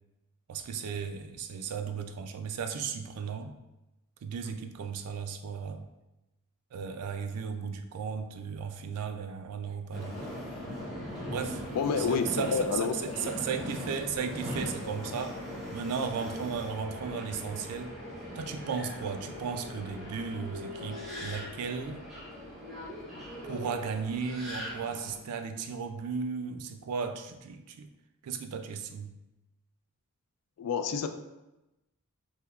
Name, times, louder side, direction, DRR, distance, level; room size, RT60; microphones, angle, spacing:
voice 1, 0.5-3.5 4.2-5.9 6.7-10.3 11.3-11.6 12.0-15.3 15.7-17.9 18.4-22.0 23.5-27.9 28.2-29.2, right 6 dB, 85° right, 7 dB, 0.3 m, -35 dB
Subway metro underground, 9.9-25.2, equal, ahead, 0.9 m, -40 dB
voice 2, 11.7-13.2 30.6-31.1, left 5 dB, 85° left, 9 dB, 0.3 m, -29 dB
3.3 x 2.8 x 2.3 m, 0.97 s
head